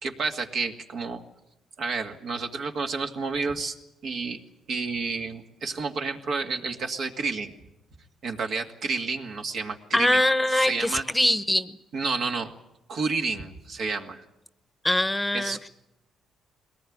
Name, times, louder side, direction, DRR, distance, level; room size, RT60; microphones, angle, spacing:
voice 1, 0.0-1.2 1.8-3.8 4.0-4.4 4.7-7.5 8.2-10.2 10.5-11.0 11.9-12.5 12.9-14.2 15.3-15.7, right 4 dB, 65° right, 3 dB, 2.2 m, -30 dB
voice 2, 9.9-11.7 14.8-15.6, left 1 dB, 10° left, 12 dB, 1.0 m, -23 dB
22.0 x 18.5 x 8.7 m, 0.91 s
cardioid pair, 90°, 0 cm